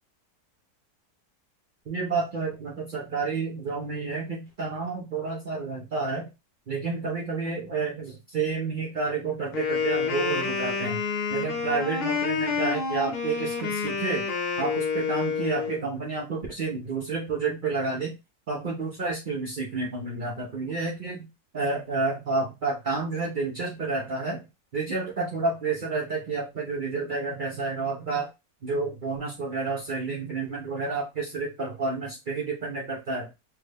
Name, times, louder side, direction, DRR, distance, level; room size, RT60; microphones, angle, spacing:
voice 1, 1.9-6.3 6.7-11.0 11.3-14.2 14.6-18.1 18.5-21.3 21.5-24.4 24.7-28.3 28.6-33.3, right 4 dB, 80° right, -3 dB, 0.4 m, -30 dB
Wind instrument woodwind instrument, 9.5-15.8, left 5 dB, 65° left, 1.2 m, -28 dB
3.2 x 2.1 x 3.3 m, 0.25 s
omnidirectional pair, 1.9 m